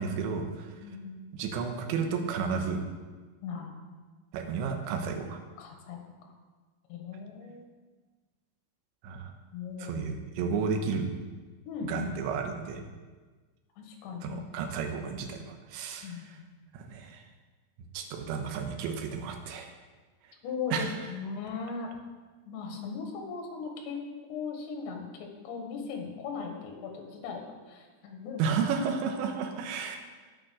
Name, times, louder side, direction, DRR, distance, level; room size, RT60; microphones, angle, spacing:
voice 1, 0.0-0.7 1.3-2.8 4.3-5.4 9.0-9.3 9.8-11.1 11.8-12.8 14.2-16.1 16.7-17.2 17.9-19.7 20.7-20.9 28.4-30.0, right 5 dB, 75° right, 4 dB, 3.0 m, -32 dB
voice 2, 0.8-1.3 3.4-3.7 5.6-6.3 6.9-7.7 9.5-10.0 11.7-12.1 13.8-14.4 16.0-16.4 20.4-21.9 22.5-28.4, left 5 dB, 70° left, 2 dB, 3.4 m, -38 dB
9.0 x 9.0 x 6.2 m, 1.4 s
omnidirectional pair, 5.9 m